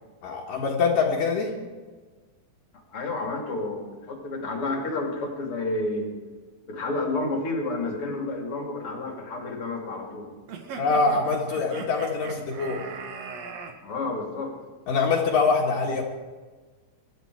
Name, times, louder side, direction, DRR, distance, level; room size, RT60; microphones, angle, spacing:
voice 1, 0.2-1.6 10.8-12.9 14.9-16.0, left 4 dB, 70° left, -2 dB, 3.1 m, -24 dB
voice 2, 2.9-6.1 6.6-10.3 13.8-14.5, left 2 dB, 40° left, 1 dB, 3.1 m, -30 dB
sound 1, 10.5-13.7, right 5 dB, 55° right, 2.3 m, -39 dB
24.0 x 12.5 x 4.6 m, 1.4 s
omnidirectional pair, 4.2 m